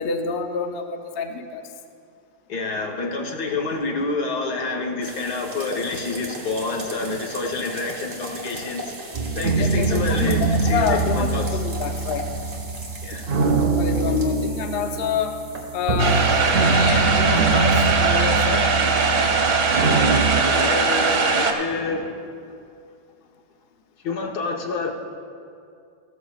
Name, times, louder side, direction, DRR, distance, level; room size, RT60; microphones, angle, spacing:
voice 1, 0.0-1.7 9.6-12.3 13.7-15.4 15.7-16.3 16.6-18.7, left 5 dB, 55° left, 5 dB, 0.7 m, -27 dB
voice 2, 2.5-9.0 9.3-11.6 13.0-13.3 20.3-22.5 24.0-24.9, left 3 dB, 75° left, 0 dB, 1.7 m, -28 dB
sound 1, 5.0-21.5, right 1 dB, 35° right, 1.5 m, -39 dB
sound 2, 9.1-20.4, right 3 dB, 60° right, 0.5 m, -23 dB
sound 3, 16.0-21.5, right 4 dB, 90° right, 1.6 m, -20 dB
15.5 x 13.5 x 2.4 m, 2.4 s
omnidirectional pair, 1.7 m